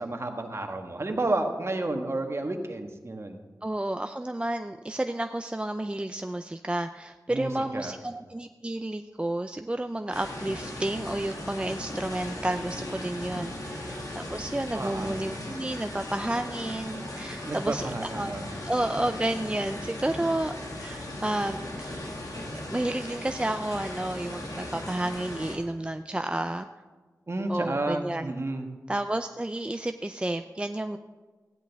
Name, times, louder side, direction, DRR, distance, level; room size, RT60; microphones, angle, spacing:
voice 1, 0.0-3.4 7.3-8.0 14.7-15.2 17.4-18.5 27.3-28.7, right 2 dB, 45° right, 4 dB, 1.4 m, -31 dB
voice 2, 3.6-20.5 20.8-22.0 22.7-26.7 27.5-28.3 28.9-31.0, right 1 dB, 15° right, 8 dB, 0.4 m, -31 dB
sound 1, 10.1-25.6, left 1 dB, 70° left, 2.1 m, -37 dB
15.5 x 10.5 x 3.5 m, 1.3 s
wide cardioid pair, 60°, 6 cm